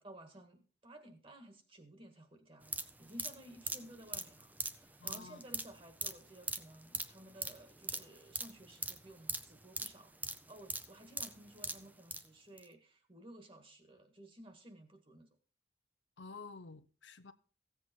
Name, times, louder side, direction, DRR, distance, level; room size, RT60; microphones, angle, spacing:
voice 1, 0.0-10.2 10.5-15.3, right 1 dB, 30° right, 1.8 m, -55 dB
sound 1, 2.6-12.3 12.6-12.7, right 3 dB, 10° right, 0.6 m, -42 dB
voice 2, 5.0-5.4 16.2-17.3, left 4 dB, 90° left, 0.8 m, -50 dB
15.0 x 7.8 x 4.5 m
head